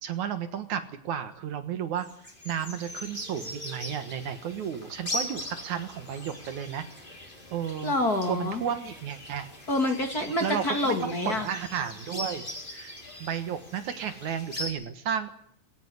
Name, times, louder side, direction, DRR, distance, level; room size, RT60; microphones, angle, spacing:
voice 1, 0.0-6.8 7.5-7.9 8.3-9.5 10.4-12.9 13.2-15.3, right 8 dB, 65° right, 10 dB, 2.7 m, -33 dB
sound 1, 2.0-14.7, left 1 dB, 15° left, 4.7 m, -40 dB
voice 2, 7.8-8.6 9.7-11.5, left 1 dB, 30° left, 5 dB, 2.2 m, -27 dB
20.0 x 17.5 x 9.8 m, 0.64 s
omnidirectional pair, 3.8 m